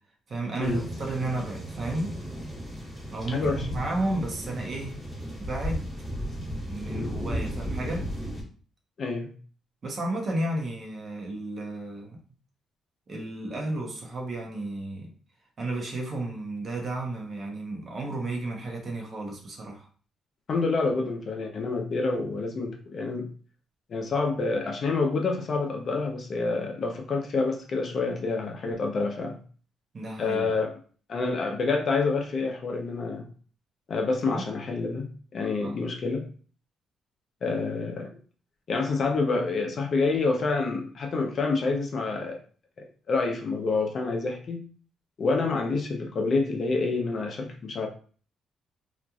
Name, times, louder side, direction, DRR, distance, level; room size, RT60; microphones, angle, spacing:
voice 1, 0.3-2.1 3.1-5.0 5.4-5.9 6.3-8.0 9.8-12.2 13.1-15.1 15.6-19.9 29.9-30.5 34.3-34.4 35.6-35.8, right 2 dB, 45° right, 0 dB, 0.8 m, -33 dB
sound 1, 0.6-8.4, equal, ahead, 1.4 m, -35 dB
voice 2, 3.3-3.8 6.9-7.2 9.0-9.3 20.5-23.3 23.9-29.4 30.2-30.7 31.1-33.3 33.9-36.2 37.4-38.1 38.7-42.4 42.8-44.6 45.2-47.9, left 3 dB, 50° left, 2 dB, 0.6 m, -28 dB
2.9 x 2.4 x 2.3 m, 0.41 s
cardioid pair, 90°, 0 cm